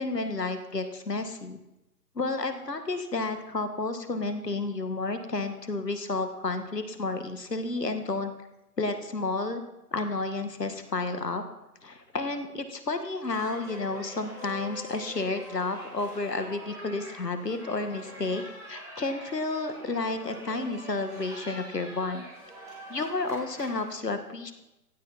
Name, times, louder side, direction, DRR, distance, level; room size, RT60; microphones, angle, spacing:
voice 1, 0.0-1.6 2.1-8.3 8.8-9.6 9.9-11.4 11.8-18.4 18.7-22.2 22.9-24.5, left 3 dB, 90° left, 8 dB, 1.7 m, -31 dB
sound 1, 13.3-24.0, right 1 dB, 5° right, 4.0 m, -45 dB
15.5 x 9.3 x 4.2 m, 0.93 s
figure-of-eight pair, 140°, 47 cm